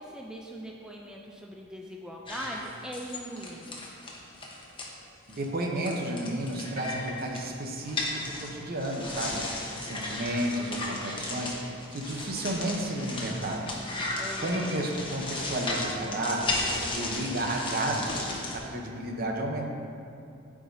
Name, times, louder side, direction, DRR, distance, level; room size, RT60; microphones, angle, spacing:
voice 1, 0.0-3.8 14.2-14.7, equal, 5° right, -1 dB, 0.4 m, -40 dB
sound 1, 2.3-4.9 5.3-5.5 5.8-18.6, left 2 dB, 25° left, 1.0 m, -35 dB
voice 2, 5.3-9.5 9.8-13.9 14.4-16.6 16.9-19.7, right 1 dB, 45° right, 1 dB, 0.8 m, -32 dB
12.5 x 4.9 x 2.7 m, 2.7 s
head